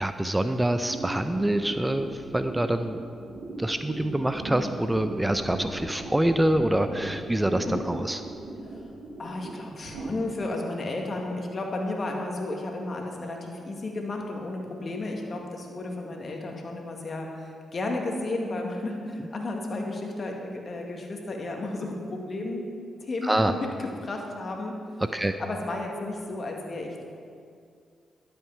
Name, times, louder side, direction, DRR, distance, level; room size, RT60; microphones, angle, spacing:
voice 1, 0.0-3.0 3.6-8.2 23.2-23.5 25.1-25.4, right 1 dB, 15° right, 9 dB, 0.7 m, -26 dB
sound 1, 0.8-10.1, right 2 dB, 80° right, 1.6 m, -38 dB
voice 2, 9.2-22.6 23.0-24.8 25.4-27.0, left 2 dB, 50° left, 1 dB, 2.1 m, -33 dB
12.0 x 8.0 x 5.9 m, 2.2 s
hypercardioid pair, 40°, 0 cm